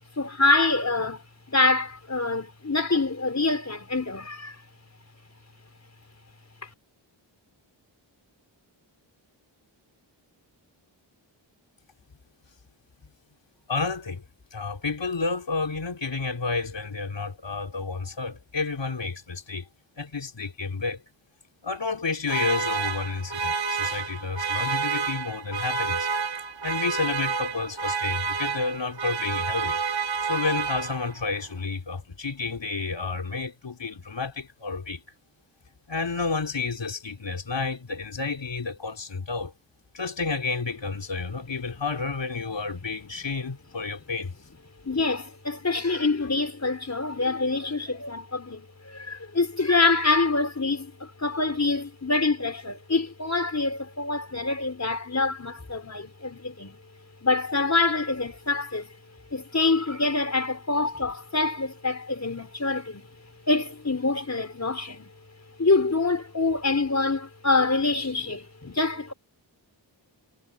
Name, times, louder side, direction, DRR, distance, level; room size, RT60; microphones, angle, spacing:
voice 1, 0.2-1.2 1.5-4.5 44.8-56.8 57.2-58.9 59.3-63.1 63.5-65.1 65.6-69.1, left 3 dB, 35° left, 4.5 m, -25 dB
voice 2, 13.7-14.2 14.5-19.7 20.0-21.0 21.6-26.1 26.6-29.8 30.2-35.0 35.9-39.5 39.9-44.3, left 4 dB, 70° left, 3.9 m, -30 dB
sound 1, 22.3-31.3, right 5 dB, 75° right, 3.5 m, -29 dB
wide cardioid pair, 60°, 45 cm